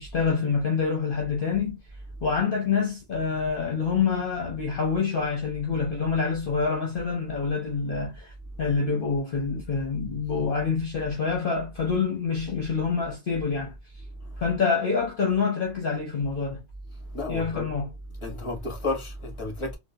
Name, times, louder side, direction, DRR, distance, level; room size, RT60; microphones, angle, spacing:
voice 1, 0.0-1.8 2.2-8.3 8.6-13.7 14.4-16.6 17.3-17.9, left 5 dB, 50° left, 1.0 m, -26 dB
voice 2, 17.1-17.7 18.2-19.8, left 2 dB, 25° left, 1.1 m, -31 dB
3.8 x 2.3 x 2.7 m
omnidirectional pair, 1.2 m